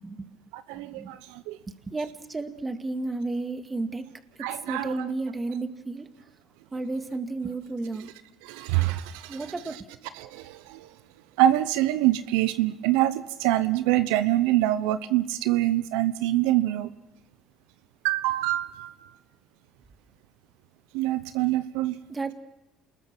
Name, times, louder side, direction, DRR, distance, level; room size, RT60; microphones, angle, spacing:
voice 1, 0.0-0.4 0.7-1.2 1.7-4.0 4.4-6.1 6.7-8.1 9.3-9.9 22.1-22.3, right 3 dB, 20° right, 8 dB, 2.1 m, -33 dB
voice 2, 0.5-1.6 4.4-4.9 8.4-9.4 10.2-10.9 11.4-16.9 18.0-19.1 20.9-22.0, right 14 dB, 85° right, 13 dB, 0.9 m, -25 dB
28.5 x 21.0 x 6.2 m, 0.88 s
supercardioid pair, 85°, 0 cm